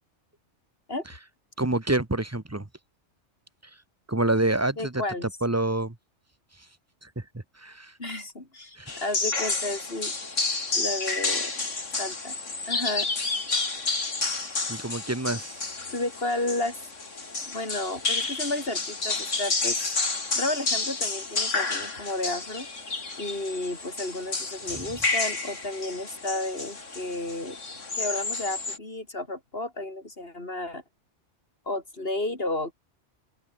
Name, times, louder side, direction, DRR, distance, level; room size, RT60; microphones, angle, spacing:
voice 1, 1.6-2.7 4.1-5.9 7.0-7.9 8.8-8.9 14.7-15.6 24.6-24.9, right 2 dB, 15° right, 1.3 m, -28 dB
voice 2, 4.8-5.3 8.0-10.1 10.7-11.5 12.0-12.4 12.7-13.1 15.9-16.8 17.5-19.8 20.3-22.7 23.2-27.6 27.9-30.8 31.7-32.7, left 2 dB, 50° left, 5.3 m, -32 dB
sound 1, 8.9-28.8, left 3 dB, 85° left, 3.5 m, -30 dB
open air
omnidirectional pair, 1.2 m